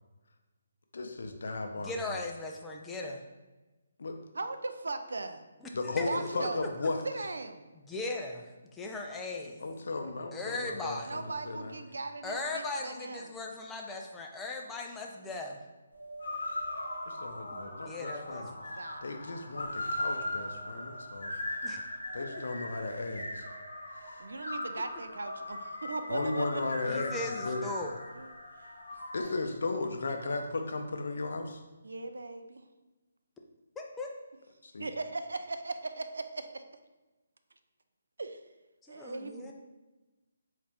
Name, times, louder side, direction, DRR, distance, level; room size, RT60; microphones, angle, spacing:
voice 1, 0.9-2.0 4.0-4.2 5.7-7.0 9.6-11.8 17.1-21.3 22.1-23.5 24.0-24.2 26.1-27.2 27.4-27.6 29.1-31.6 34.6-34.9, left 3 dB, 70° left, 5 dB, 0.5 m, -35 dB
voice 2, 1.8-3.2 6.0-6.1 7.9-9.6 10.3-11.1 12.2-15.6 17.5-18.7 21.6-21.8 22.3-22.4 26.9-27.9 33.8-34.1 38.9-39.5, left 2 dB, 10° left, 0 dB, 0.3 m, -38 dB
voice 3, 4.3-5.4 5.9-6.7 7.0-7.7 11.1-13.3 18.5-19.0 24.2-26.6 28.1-28.3 29.2-29.5 31.8-32.7 34.8-36.6 38.2-38.4 38.9-39.5, right 3 dB, 85° right, 8 dB, 0.3 m, -38 dB
sound 1, 15.9-29.2, left 1 dB, 85° left, 0.9 m, -39 dB
3.9 x 2.4 x 3.3 m, 1.1 s
hypercardioid pair, 160°, 0 cm